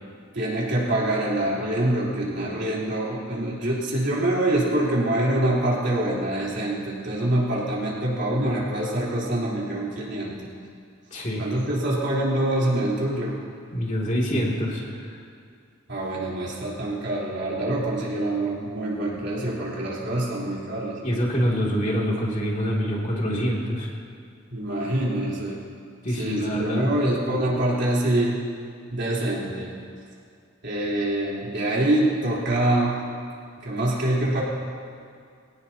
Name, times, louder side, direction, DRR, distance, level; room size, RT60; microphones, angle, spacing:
voice 1, 0.3-10.5 11.4-13.4 15.9-21.0 24.5-25.6 26.2-28.4 28.9-29.7 30.6-33.0 33.6-34.4, right 1 dB, 60° right, -6 dB, 3.7 m, -25 dB
voice 2, 11.1-11.5 13.7-15.2 21.0-23.9 26.0-26.9, equal, 40° left, -4 dB, 2.7 m, -25 dB
22.5 x 18.0 x 2.9 m, 2.2 s
head